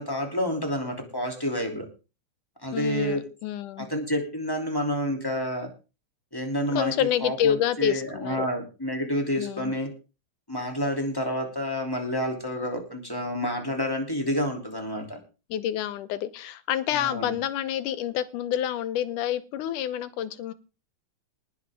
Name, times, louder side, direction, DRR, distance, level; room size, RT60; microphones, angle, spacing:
voice 1, 0.0-1.9 2.6-3.2 3.8-5.7 6.3-9.9 10.5-15.2 16.9-17.4, equal, 5° left, 2 dB, 2.8 m, -29 dB
voice 2, 2.7-3.9 6.7-8.5 9.4-9.7 15.5-20.5, left 10 dB, 90° left, 14 dB, 2.5 m, -28 dB
19.5 x 10.0 x 3.7 m, 0.33 s
omnidirectional pair, 3.6 m